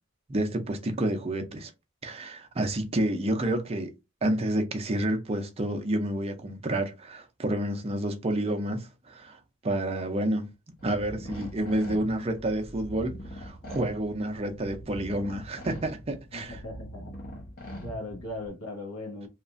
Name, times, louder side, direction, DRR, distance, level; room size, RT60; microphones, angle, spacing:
voice 1, 0.3-1.7 2.0-3.9 4.2-10.5 10.8-16.6, right 1 dB, 25° right, 0.5 m, -29 dB
sound 1, 10.8-18.5, equal, 45° left, 0.9 m, -42 dB
voice 2, 16.3-17.1 17.8-19.3, left 2 dB, 75° left, 0.9 m, -38 dB
2.9 x 2.4 x 2.4 m
head